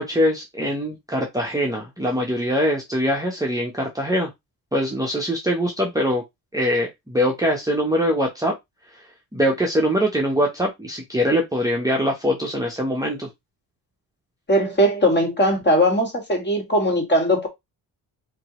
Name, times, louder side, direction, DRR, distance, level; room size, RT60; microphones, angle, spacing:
voice 1, 0.0-4.3 4.7-6.2 6.5-8.5 9.3-13.3, equal, 10° right, 0.9 m, -23 dB
voice 2, 14.5-17.5, equal, 25° left, 1.9 m, -19 dB
4.5 x 2.9 x 3.0 m
cardioid pair, 95°, 42 cm